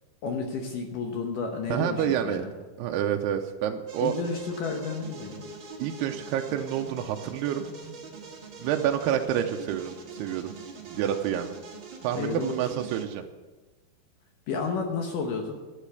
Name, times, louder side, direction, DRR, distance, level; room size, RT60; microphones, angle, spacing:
voice 1, 0.2-2.5 4.0-5.5 12.1-12.8 14.5-15.5, left 4 dB, 70° left, 3 dB, 2.0 m, -31 dB
voice 2, 1.7-2.4 2.8-4.1 5.8-7.7 8.6-10.5 10.8-11.6 12.0-13.2, right 10 dB, 80° right, 4 dB, 2.5 m, -28 dB
sound 1, 3.9-13.0, right 5 dB, 65° right, 1.2 m, -43 dB
11.5 x 8.3 x 8.1 m, 1.2 s
omnidirectional pair, 5.2 m